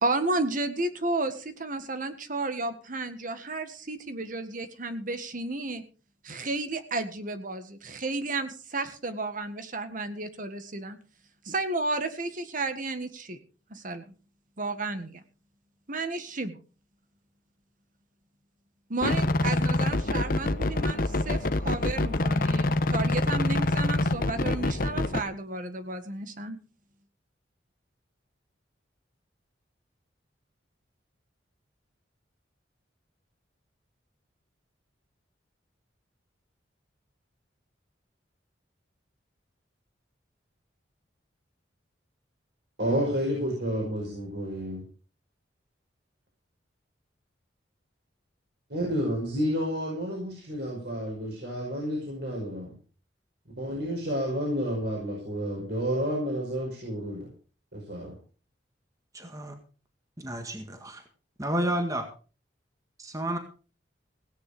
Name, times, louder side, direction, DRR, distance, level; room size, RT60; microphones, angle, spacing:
voice 1, 0.0-5.8 6.2-11.0 11.4-13.4 13.7-14.1 14.6-15.2 15.9-16.6 18.9-26.6, right 2 dB, 45° right, 9 dB, 1.7 m, -32 dB
sound 1, 19.0-25.2, left 2 dB, 50° left, 1.0 m, -26 dB
voice 2, 42.8-44.8 48.7-52.7 53.6-57.3 57.7-58.1, equal, 60° right, -1 dB, 5.3 m, -30 dB
voice 3, 59.1-59.5 60.2-61.0 61.4-62.1 63.0-63.4, right 1 dB, 20° right, 4 dB, 1.8 m, -31 dB
17.0 x 9.6 x 5.1 m, 0.38 s
head